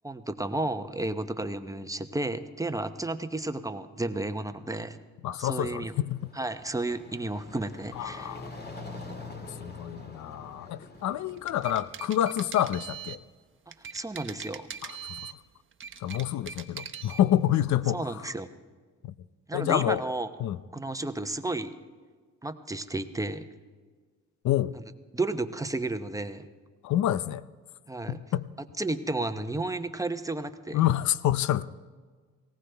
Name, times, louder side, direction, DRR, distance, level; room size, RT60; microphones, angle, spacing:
voice 1, 0.0-5.0 5.4-5.9 6.3-8.4 13.9-14.7 17.9-18.5 19.5-20.3 20.7-21.8 22.4-23.5 24.7-24.8 25.1-26.5 27.9-28.2 28.8-30.8, right 2 dB, 10° right, 0.9 m, -32 dB
voice 2, 5.2-6.3 8.0-8.5 9.6-13.2 14.8-15.3 16.0-18.2 19.0-19.1 19.5-20.0 20.4-20.6 24.4-24.7 26.8-27.4 28.1-28.5 30.7-31.6, left 12 dB, 70° left, 0.6 m, -28 dB
sound 1, 6.0-11.9, left 3 dB, 35° left, 2.2 m, -44 dB
sound 2, 11.3-13.2 13.7-15.4 15.7-17.2, right 7 dB, 40° right, 1.1 m, -41 dB
19.5 x 18.0 x 3.4 m
cardioid pair, 90°, 30 cm